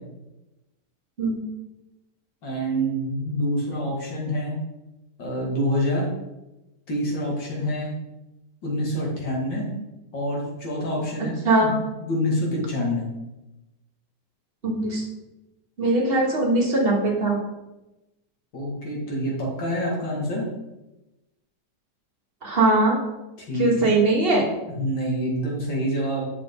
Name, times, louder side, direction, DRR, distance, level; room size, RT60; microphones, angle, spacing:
voice 1, 2.4-4.6 5.2-6.0 6.9-7.9 8.6-9.7 10.1-11.7 12.0-13.1 18.5-20.5 23.4-23.9 24.7-26.2, equal, 85° left, -3 dB, 2.9 m, -27 dB
voice 2, 14.6-15.1 15.8-17.4 22.4-23.0 23.5-24.5, right 2 dB, 35° right, -1 dB, 1.7 m, -20 dB
8.1 x 6.4 x 3.8 m, 0.99 s
omnidirectional pair, 1.9 m